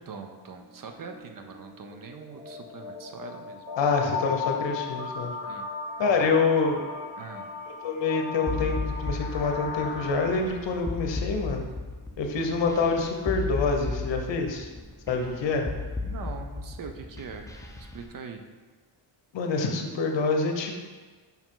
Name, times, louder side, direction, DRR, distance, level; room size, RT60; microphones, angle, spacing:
voice 1, 0.1-3.7 5.4-5.7 6.2-6.4 7.2-7.5 16.0-18.4, right 5 dB, 45° right, 5 dB, 0.6 m, -42 dB
sound 1, 0.6-0.7 1.0-10.3, left 5 dB, 15° right, 1.3 m, -37 dB
voice 2, 3.8-5.3 6.0-6.8 7.8-11.6 12.2-14.7 15.1-15.7 19.3-20.8, left 4 dB, 60° left, 3 dB, 0.9 m, -26 dB
sound 2, 8.5-18.0, left 3 dB, 10° left, 0.3 m, -34 dB
5.5 x 4.8 x 3.8 m, 1.4 s
wide cardioid pair, 145°, 49 cm